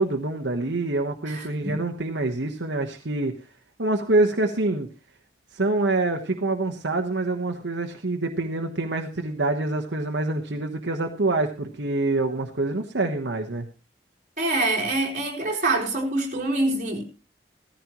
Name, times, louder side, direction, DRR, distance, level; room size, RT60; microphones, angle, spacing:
voice 1, 0.0-3.4 3.8-4.9 5.5-13.7, right 2 dB, 80° right, 1.2 m, -26 dB
voice 2, 1.3-1.7 14.4-17.0, right 2 dB, 45° right, 4.4 m, -25 dB
16.5 x 14.5 x 3.0 m
head